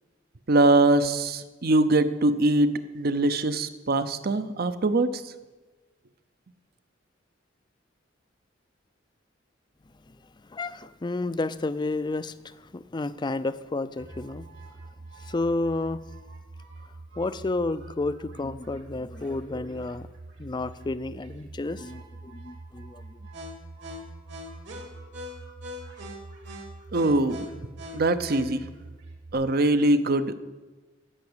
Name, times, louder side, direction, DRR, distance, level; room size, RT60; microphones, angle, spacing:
voice 1, 0.5-5.2 26.9-27.5 27.9-28.7 29.3-30.4, right 2 dB, 55° right, 0.7 m, -22 dB
voice 2, 10.5-14.5 15.2-16.0 17.2-20.1 20.4-23.2, left 2 dB, 25° left, 0.4 m, -31 dB
sound 1, 14.0-29.3, right 1 dB, 70° right, 3.0 m, -43 dB
15.5 x 5.9 x 8.0 m
head